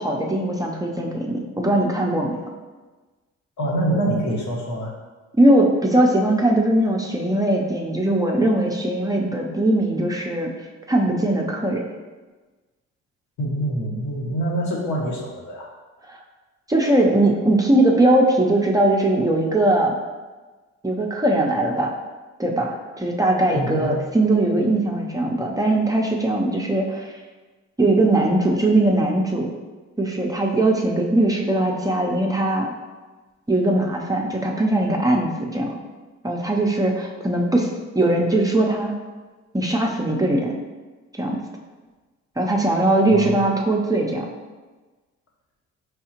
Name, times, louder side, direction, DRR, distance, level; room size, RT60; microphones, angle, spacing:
voice 1, 0.0-2.4 5.3-10.5 10.9-11.8 16.1-16.2 16.7-19.9 20.8-21.9 22.4-27.1 27.8-29.5 30.0-32.7 33.5-35.8 36.2-38.9 39.5-40.6 41.1-41.4 42.4-44.3, right 1 dB, 10° right, -1 dB, 0.5 m, -20 dB
voice 2, 3.6-4.9 13.4-15.7 23.5-23.9 43.1-43.4, right 1 dB, 75° left, -2 dB, 1.1 m, -25 dB
4.6 x 3.6 x 2.9 m, 1.3 s
cardioid pair, 90°, 30 cm